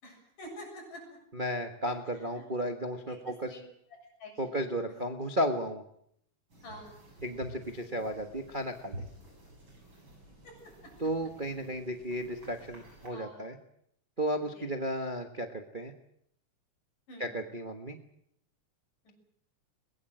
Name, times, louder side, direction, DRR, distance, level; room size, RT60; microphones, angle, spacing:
voice 1, 0.0-1.2 2.4-2.5 3.1-3.2 3.5-3.6 4.2-4.3 6.6-7.0 10.4-10.9 13.1-13.4 14.5-14.6 17.1-17.3 19.1-19.2, equal, 75° left, 1 dB, 8.8 m, -47 dB
voice 2, 1.3-3.6 4.4-5.8 7.2-9.0 11.0-13.6 14.2-15.9 17.2-18.0, equal, 80° right, 5 dB, 0.4 m, -34 dB
sound 1, 6.5-13.1, right 1 dB, 35° right, 8.3 m, -50 dB
22.0 x 21.0 x 7.9 m, 0.72 s
omnidirectional pair, 3.7 m